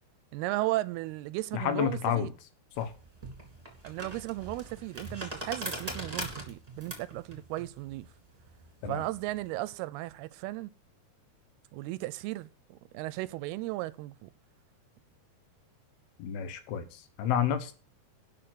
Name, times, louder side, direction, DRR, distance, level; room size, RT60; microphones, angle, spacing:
voice 1, 0.3-2.3 3.8-8.1 8.8-10.7 11.7-14.3, right 18 dB, 90° right, 2.6 m, -35 dB
voice 2, 1.5-2.3 2.8-2.9 8.8-9.0 16.2-17.7, left 9 dB, 85° left, 3.1 m, -30 dB
sound 1, 2.7-9.4, right 1 dB, 10° right, 2.1 m, -41 dB
12.0 x 5.1 x 7.8 m
omnidirectional pair, 4.5 m